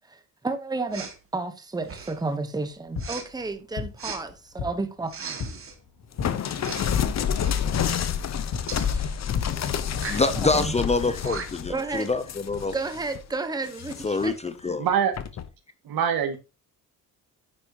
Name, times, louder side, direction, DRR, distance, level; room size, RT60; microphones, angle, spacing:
voice 1, 0.1-5.1 6.3-6.4 8.8-9.2 10.3-10.7 11.7-12.1 12.7-14.3, right 3 dB, 10° right, 1.2 m, -32 dB
Respiratory sounds, 0.9-1.2 1.8-2.3 3.0-3.3 4.0-4.2 5.1-5.8 6.6-7.0 7.3-7.6 8.7-8.9 9.9-10.3 10.9-11.0 11.2-11.7, right 5 dB, 35° right, 2.0 m, -37 dB
sound 1, 2.7-10.4, left 5 dB, 75° left, 2.5 m, -38 dB
sound 2, 6.2-13.2 13.7-14.3 15.2-15.5, left 8 dB, 45° left, 1.0 m, -29 dB
voice 2, 10.1-12.7 14.0-14.8, left 3 dB, 20° left, 0.6 m, -26 dB
voice 3, 14.8-15.1 15.8-16.4, right 8 dB, 70° right, 2.3 m, -24 dB
9.8 x 9.2 x 3.0 m
cardioid pair, 135°, 37 cm